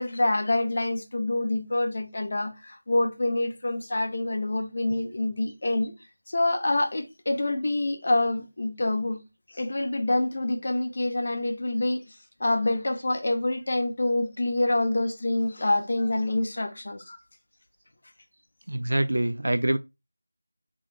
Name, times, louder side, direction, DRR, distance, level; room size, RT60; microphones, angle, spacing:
voice 1, 0.0-5.9 6.3-9.2 9.5-17.2, left 2 dB, 50° left, 0.9 m, -26 dB
voice 2, 18.7-19.8, right 1 dB, 75° right, 0.3 m, -25 dB
3.6 x 3.3 x 3.4 m
figure-of-eight pair, 170°, 0 cm